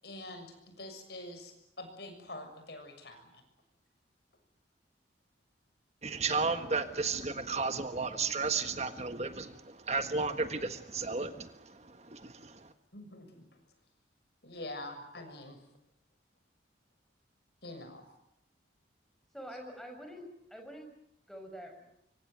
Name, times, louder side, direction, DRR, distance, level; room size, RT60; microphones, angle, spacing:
voice 1, 0.0-3.4 12.9-13.4 14.4-15.6 17.6-18.1, left 1 dB, 65° left, 7 dB, 6.8 m, -45 dB
voice 2, 6.0-12.7, right 4 dB, 35° right, 8 dB, 1.5 m, -33 dB
voice 3, 19.3-20.2 20.5-20.9 21.3-21.9, equal, ahead, 3 dB, 5.9 m, -46 dB
25.5 x 25.0 x 9.3 m, 0.79 s
head